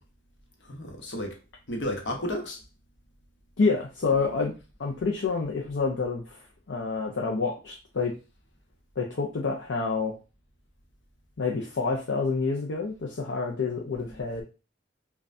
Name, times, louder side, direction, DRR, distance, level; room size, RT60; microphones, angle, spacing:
voice 1, 0.6-1.4 1.7-2.6, left 1 dB, 70° left, 1.1 m, -32 dB
voice 2, 3.6-4.5 4.8-8.1 9.0-10.2 11.4-14.4, left 4 dB, 90° left, 0.6 m, -28 dB
5.3 x 2.3 x 2.6 m
head